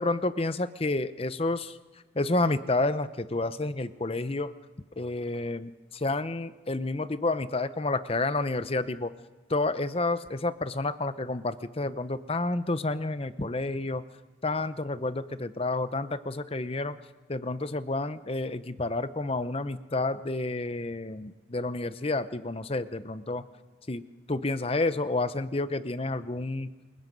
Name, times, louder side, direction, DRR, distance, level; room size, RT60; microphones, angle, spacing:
voice 1, 0.0-1.7 2.2-4.5 5.0-9.1 9.5-14.0 14.4-17.0 17.3-23.4 23.9-24.0 24.3-26.7, left 2 dB, 30° left, 13 dB, 0.8 m, -30 dB
28.0 x 22.0 x 5.4 m, 1.3 s
head